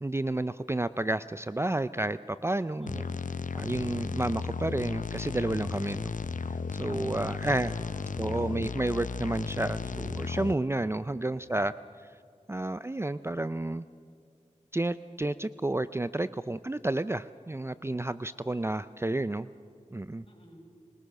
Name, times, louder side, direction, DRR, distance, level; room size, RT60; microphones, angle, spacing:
voice 1, 0.0-3.0 3.5-6.1 6.7-7.7 8.2-11.7 12.5-13.9 14.7-19.5 19.9-20.3, right 2 dB, 20° right, 14 dB, 0.4 m, -31 dB
voice 2, 2.8-3.5 7.5-8.6 20.2-20.7, equal, 45° left, -1 dB, 5.7 m, -52 dB
sound 1, 2.9-10.5, left 5 dB, 75° left, 0.6 m, -34 dB
21.5 x 20.5 x 6.5 m, 2.4 s
wide cardioid pair, 60°, 13 cm